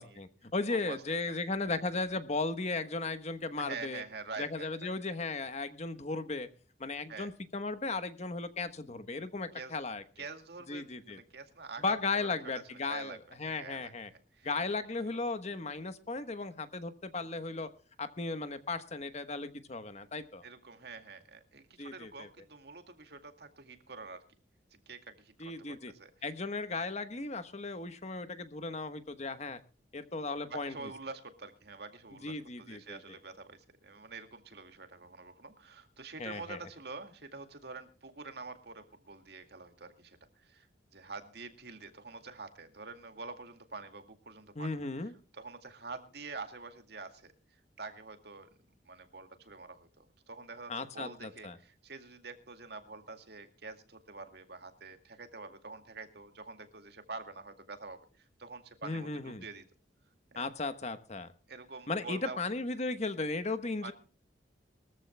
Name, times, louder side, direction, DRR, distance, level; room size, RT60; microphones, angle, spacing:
voice 1, 0.0-4.0 4.4-6.5 6.8-10.0 10.7-11.2 11.8-14.1 14.4-17.7 18.0-20.4 21.8-22.3 25.4-25.9 26.2-29.6 29.9-30.9 32.2-33.0 36.2-36.6 44.5-45.1 50.7-51.6 58.8-59.4 60.3-61.3 61.9-63.9, left 3 dB, 40° left, 11 dB, 1.2 m, -36 dB
voice 2, 3.6-5.2 7.1-7.3 9.5-9.7 10.2-13.9 14.3-14.5 15.1-15.2 20.4-24.2 24.9-26.1 30.5-40.7 40.9-44.8 45.3-47.3 47.8-48.5 48.8-59.6 60.3-60.4 61.5-62.4 63.8-63.9, right 4 dB, 65° right, 7 dB, 2.2 m, -46 dB
22.5 x 14.5 x 2.2 m, 0.37 s
head